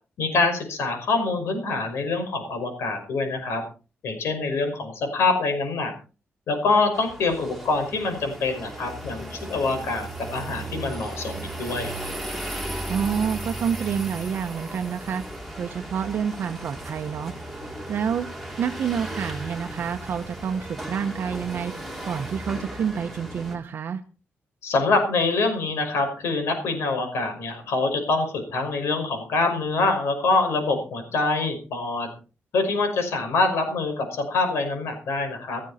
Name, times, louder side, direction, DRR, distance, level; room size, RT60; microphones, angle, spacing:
voice 1, 0.2-3.6 4.0-5.9 6.5-11.9 24.6-32.1 32.5-35.6, left 3 dB, 75° left, 6 dB, 5.6 m, -25 dB
sound 1, 6.9-23.5, right 1 dB, ahead, 3.2 m, -36 dB
voice 2, 12.9-15.2 15.6-17.3 17.9-18.3 18.6-21.7 22.0-24.0, right 7 dB, 50° right, 5 dB, 1.1 m, -28 dB
16.5 x 14.5 x 4.3 m, 0.36 s
wide cardioid pair, 175°, 4 cm